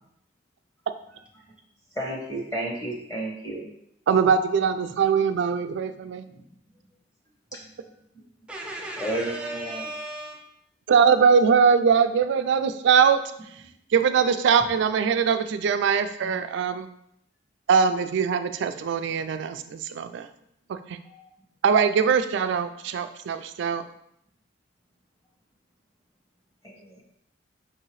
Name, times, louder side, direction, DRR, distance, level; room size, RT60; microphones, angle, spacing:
voice 1, 1.9-3.7 6.2-6.4 7.5-7.7 8.1-8.2 9.0-9.9 13.6-13.7 16.2-16.3 21.0-21.3 26.6-27.0, right 1 dB, 20° left, -2 dB, 1.1 m, -33 dB
voice 2, 4.1-6.2 10.9-13.2 13.9-16.9 17.7-20.3 20.7-21.0 21.6-23.8, right 6 dB, 65° right, 9 dB, 0.3 m, -22 dB
voice 3, 8.5-10.5, right 1 dB, 5° right, -1 dB, 0.7 m, -36 dB
5.3 x 2.8 x 3.0 m, 0.74 s
head